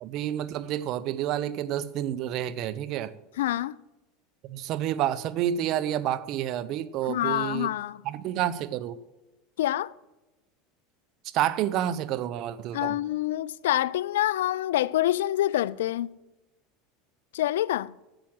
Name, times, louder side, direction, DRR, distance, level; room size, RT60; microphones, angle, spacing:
voice 1, 0.0-3.1 4.4-7.7 8.0-9.0 11.2-13.0, right 11 dB, 55° right, 0.7 m, -29 dB
voice 2, 3.4-3.8 7.0-8.0 9.6-9.9 12.7-16.2 17.3-17.9, left 13 dB, 85° left, 0.3 m, -26 dB
8.8 x 7.5 x 7.7 m
hypercardioid pair, 100°, 0 cm